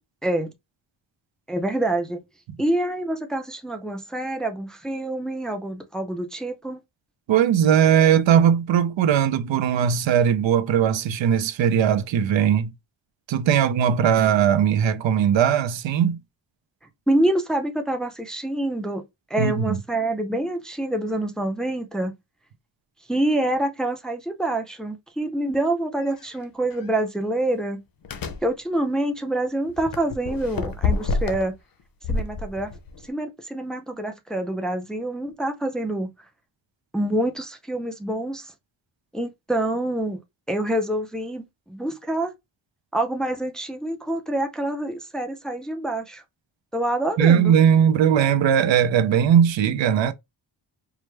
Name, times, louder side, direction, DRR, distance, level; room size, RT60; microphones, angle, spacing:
voice 1, 1.5-2.2 2.6-6.8 17.1-19.0 19.3-22.2 23.1-27.8 28.4-31.5 32.1-32.7 33.1-36.1 36.9-38.5 39.1-40.2 40.5-42.3 42.9-46.2 46.7-47.5, right 1 dB, ahead, 0.5 m, -26 dB
voice 2, 7.3-12.7 13.3-16.2 19.4-19.8 47.2-50.1, right 8 dB, 75° right, 0.6 m, -19 dB
sound 1, 26.1-26.2 26.7-26.9 28.0-28.5 29.7-31.5 32.0-33.1, left 4 dB, 50° left, 0.7 m, -28 dB
4.8 x 2.0 x 3.3 m
wide cardioid pair, 145°, 45 cm